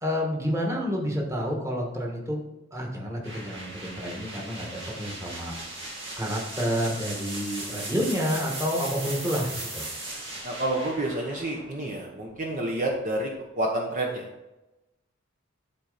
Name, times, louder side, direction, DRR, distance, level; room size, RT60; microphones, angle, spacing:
voice 1, 0.0-2.4 2.7-5.6 6.2-9.8, equal, 15° right, -1 dB, 1.6 m, -29 dB
sound 1, 3.2-13.0, right 2 dB, 65° right, 2.1 m, -38 dB
voice 2, 10.4-13.3 13.6-14.3, right 1 dB, 40° right, 0 dB, 0.9 m, -29 dB
11.0 x 4.3 x 4.0 m, 1.0 s
head